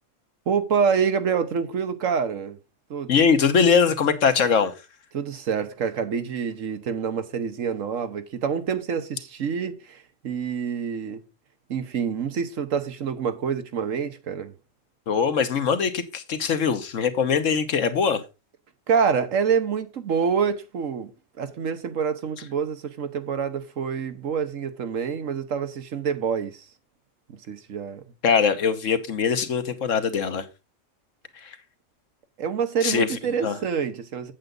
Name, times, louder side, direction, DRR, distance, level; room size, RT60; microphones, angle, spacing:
voice 1, 0.5-2.6 2.9-3.1 5.1-11.2 11.7-14.5 18.9-21.1 21.4-26.7 27.3-28.0 32.4-34.3, right 6 dB, 90° right, 1.5 m, -27 dB
voice 2, 3.1-4.7 15.1-18.2 28.2-30.5 31.4-31.6 32.8-33.6, left 6 dB, 80° left, 1.5 m, -22 dB
8.3 x 8.0 x 3.9 m
omnidirectional pair, 1.3 m